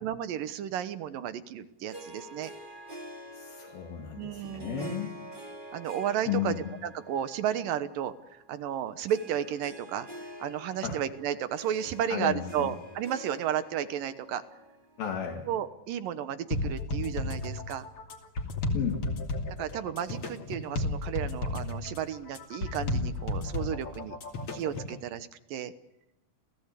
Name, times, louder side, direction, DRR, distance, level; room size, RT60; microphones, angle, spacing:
voice 1, 0.0-2.5 4.2-5.0 5.7-6.6 6.9-10.1 10.4-14.4 15.5-17.9 19.5-24.2 24.5-25.7, right 10 dB, 70° right, 12 dB, 2.7 m, -33 dB
Harp, 1.9-15.5, equal, 15° right, 1.9 m, -47 dB
voice 2, 3.3-5.2 6.3-6.7 10.8-11.0 12.1-12.7 15.0-15.5 18.7-19.1, left 9 dB, 75° left, 2 dB, 4.0 m, -33 dB
sound 1, 16.5-25.0, left 2 dB, 40° left, 3.4 m, -33 dB
29.5 x 17.5 x 8.4 m, 0.93 s
omnidirectional pair, 4.2 m